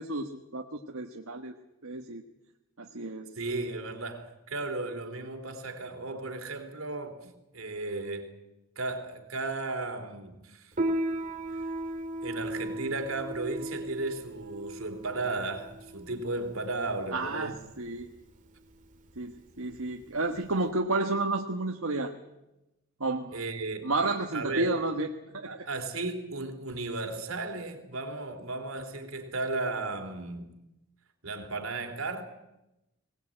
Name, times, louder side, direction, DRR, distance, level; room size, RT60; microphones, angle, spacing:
voice 1, 0.0-1.5 1.8-2.2 2.8-3.3 17.1-18.1 19.2-22.1 23.0-23.4 23.8-25.7, right 2 dB, 90° right, 1.5 m, -31 dB
voice 2, 3.4-8.3 8.8-10.7 12.2-17.6 23.3-23.9 24.3-24.8 25.4-30.5 31.2-32.2, right 3 dB, 75° right, 3.3 m, -35 dB
Piano, 10.7-20.7, right 1 dB, 35° right, 2.1 m, -36 dB
22.0 x 18.5 x 8.9 m
head